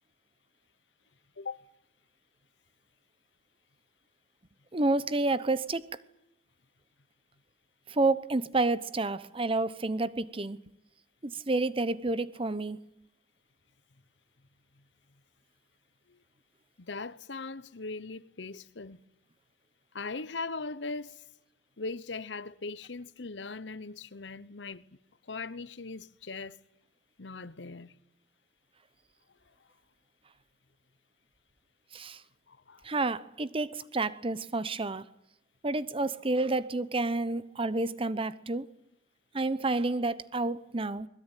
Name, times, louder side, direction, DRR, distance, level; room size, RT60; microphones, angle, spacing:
voice 1, 4.7-5.9 7.9-10.6 11.2-12.8 31.9-32.2 32.8-35.1 35.6-38.7 39.3-41.1, right 2 dB, 30° right, 0.9 m, -29 dB
voice 2, 16.8-19.0 19.9-21.2 21.8-24.8 25.3-26.6 27.2-27.9 32.5-32.9, left 3 dB, 85° left, 1.0 m, -39 dB
23.5 x 21.0 x 9.2 m
head